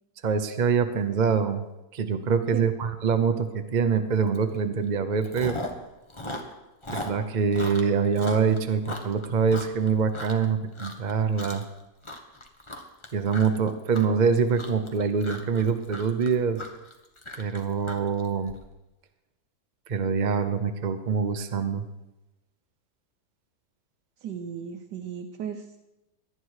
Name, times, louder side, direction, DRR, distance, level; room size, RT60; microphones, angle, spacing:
voice 1, 0.2-1.6 1.9-5.6 6.9-11.6 13.1-16.6 17.4-18.5 19.9-21.8, right 6 dB, 45° right, 8 dB, 0.6 m, -25 dB
Chewing mastication, 4.3-4.6 4.9-5.8 6.1-10.5 10.7-11.1 11.4-11.8 12.0-18.5, left 1 dB, 20° left, 1.3 m, -38 dB
voice 2, 24.2-25.8, right 8 dB, 85° right, 4 dB, 1.5 m, -35 dB
18.5 x 11.5 x 4.8 m, 0.97 s
omnidirectional pair, 1.8 m